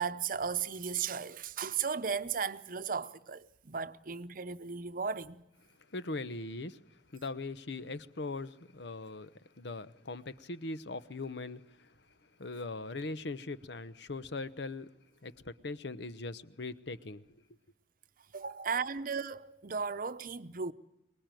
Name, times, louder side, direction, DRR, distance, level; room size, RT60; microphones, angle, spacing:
voice 1, 0.0-5.4 18.3-20.7, right 6 dB, 50° right, 0.8 m, -35 dB
voice 2, 5.9-11.9 12.4-14.9 15.2-17.2, left 3 dB, 70° left, 1.0 m, -40 dB
24.0 x 19.5 x 9.1 m
head